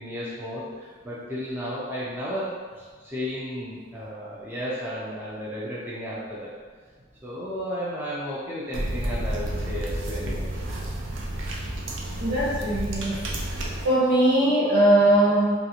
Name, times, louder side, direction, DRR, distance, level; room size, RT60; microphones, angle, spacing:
voice 1, 0.0-6.5 7.2-10.4, equal, 10° right, -8 dB, 0.4 m, -33 dB
sound 1, 8.7-13.9, right 1 dB, 80° right, 0.4 m, -31 dB
voice 2, 12.2-13.2 13.8-15.5, right 1 dB, 50° right, -14 dB, 0.9 m, -20 dB
2.6 x 2.4 x 2.8 m, 1.5 s
head